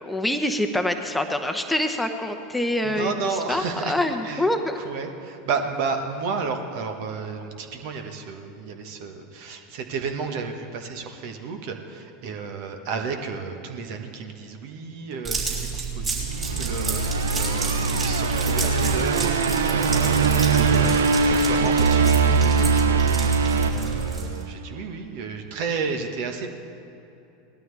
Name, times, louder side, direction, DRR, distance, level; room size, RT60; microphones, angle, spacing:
voice 1, 0.0-4.8, left 1 dB, 5° left, 5 dB, 0.9 m, -25 dB
voice 2, 2.8-4.0 4.2-4.4 4.7-26.5, right 5 dB, 60° right, 5 dB, 1.3 m, -32 dB
sound 1, 15.2-24.4, right 4 dB, 35° right, 3.8 m, -30 dB
sound 2, 16.3-24.6, right 4 dB, 80° right, 0.6 m, -22 dB
19.0 x 12.5 x 3.4 m, 2.8 s
hypercardioid pair, 85°, 0 cm